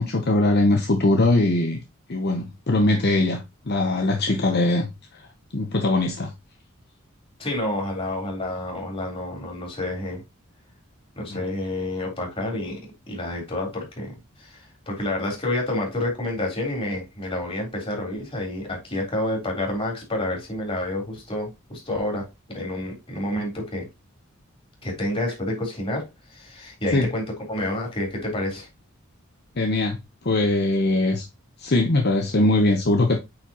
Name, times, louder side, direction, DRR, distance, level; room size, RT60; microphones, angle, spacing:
voice 1, 0.0-1.8 2.1-4.9 5.5-6.3 11.3-11.5 26.9-27.1 29.6-30.0 30.2-31.3 31.6-33.2, left 2 dB, 50° left, 0.9 m, -21 dB
voice 2, 7.4-10.2 11.2-12.8 13.1-23.9 24.8-28.7, left 1 dB, 30° left, 3.7 m, -29 dB
8.7 x 4.6 x 2.9 m
head